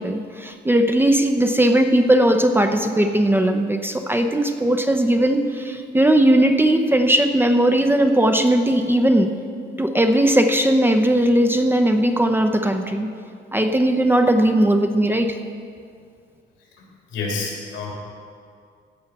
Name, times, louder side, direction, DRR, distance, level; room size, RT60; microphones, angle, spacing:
voice 1, 0.0-9.3 9.8-13.1 13.5-15.4, right 1 dB, 10° right, 6 dB, 0.7 m, -18 dB
voice 2, 16.8-17.9, left 4 dB, 85° left, -2 dB, 3.3 m, -29 dB
15.5 x 5.5 x 6.0 m, 2.2 s
cardioid pair, 90°, 20 cm